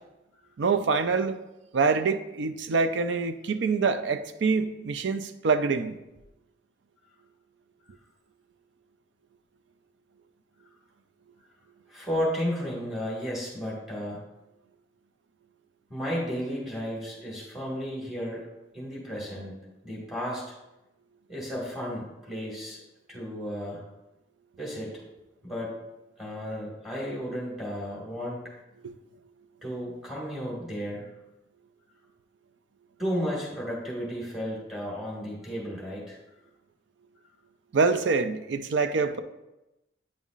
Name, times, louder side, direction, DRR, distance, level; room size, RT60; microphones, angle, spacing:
voice 1, 0.6-1.4 1.7-6.0 28.8-28.9 37.7-39.2, right 4 dB, 80° right, 9 dB, 0.4 m, -25 dB
voice 2, 11.9-14.2 15.9-18.4 18.7-19.5 19.8-20.4 21.3-22.8 23.1-23.8 24.6-25.0 25.4-25.7 26.2-28.5 29.6-31.1 33.0-36.2, equal, ahead, -5 dB, 1.7 m, -33 dB
8.9 x 5.5 x 2.5 m, 0.96 s
head